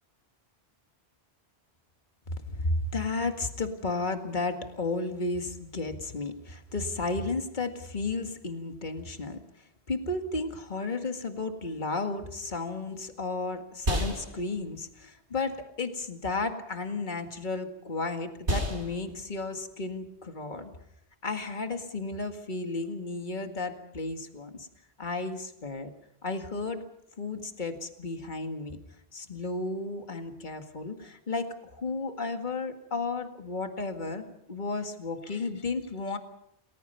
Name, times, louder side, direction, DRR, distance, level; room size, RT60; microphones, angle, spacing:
voice 1, 2.3-9.4 9.9-20.7 21.2-24.7 25.0-25.9 26.2-26.8 27.2-28.8 29.1-36.2, left 3 dB, 45° left, 6 dB, 2.1 m, -33 dB
sound 1, 12.7-22.1, equal, 85° right, 4.4 m, -37 dB
29.5 x 20.5 x 5.7 m, 0.75 s
omnidirectional pair, 1.1 m